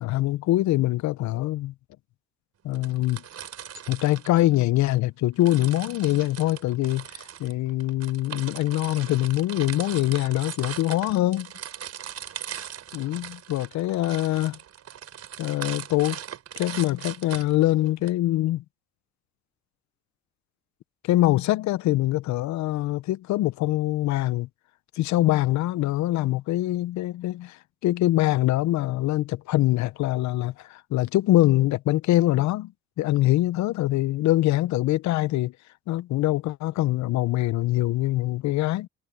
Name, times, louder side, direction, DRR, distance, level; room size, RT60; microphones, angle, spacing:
voice 1, 0.0-1.7 2.6-3.2 3.9-11.5 12.9-14.6 15.4-16.2 16.6-18.6 21.0-24.5 25.0-32.7 33.0-35.5 35.9-38.9, left 16 dB, 70° left, 0.8 m, -24 dB
sound 1, 2.7-5.0 5.4-18.1, right 9 dB, 55° right, 5.4 m, -39 dB
supercardioid pair, 70°, 30 cm